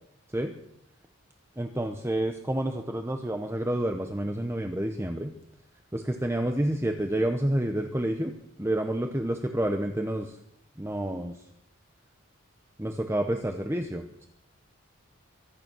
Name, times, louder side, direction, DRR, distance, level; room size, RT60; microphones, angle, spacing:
voice 1, 1.6-5.3 5.9-10.4 10.8-11.4 12.8-14.3, right 1 dB, 10° right, 5 dB, 1.0 m, -29 dB
23.5 x 9.8 x 6.2 m, 0.75 s
head